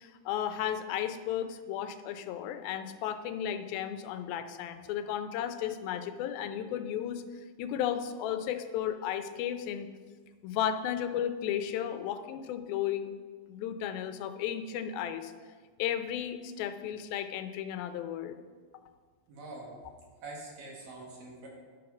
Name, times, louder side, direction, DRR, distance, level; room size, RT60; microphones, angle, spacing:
voice 1, 0.0-7.2 7.6-9.9 10.4-13.2 13.5-15.3 15.8-18.4, left 10 dB, 90° left, 9 dB, 2.5 m, -34 dB
voice 2, 19.3-19.7 20.2-21.5, right 2 dB, 65° right, -2 dB, 3.6 m, -44 dB
11.0 x 6.4 x 5.9 m, 1.5 s
omnidirectional pair, 4.1 m